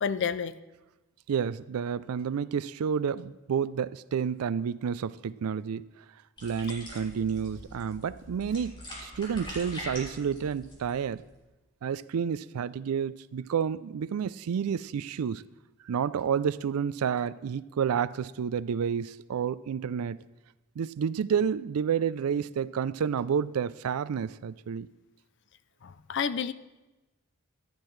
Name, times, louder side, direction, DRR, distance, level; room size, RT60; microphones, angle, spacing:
voice 1, 0.0-0.5 25.8-26.5, left 6 dB, 55° left, 15 dB, 0.4 m, -29 dB
voice 2, 1.3-5.8 6.4-8.8 9.0-11.2 11.8-15.4 15.9-20.2 20.8-24.9, right 7 dB, 85° right, 18 dB, 0.4 m, -30 dB
sound 1, 6.4-11.4, left 1 dB, 20° left, 3.2 m, -43 dB
14.5 x 10.5 x 3.2 m, 1.1 s
head